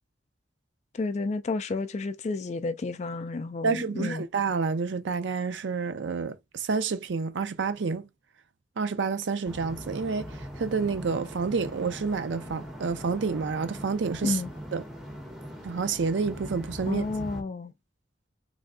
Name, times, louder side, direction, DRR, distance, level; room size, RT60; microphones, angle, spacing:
voice 1, 0.9-4.3 14.2-14.5 16.9-17.7, left 3 dB, 40° left, 0.3 m, -31 dB
voice 2, 3.6-8.1 8.8-10.3 10.6-14.4 14.7-14.8 15.6-17.1, right 5 dB, 85° right, 0.5 m, -29 dB
sound 1, 9.4-17.4, equal, ahead, 1.0 m, -41 dB
3.5 x 2.2 x 3.6 m
head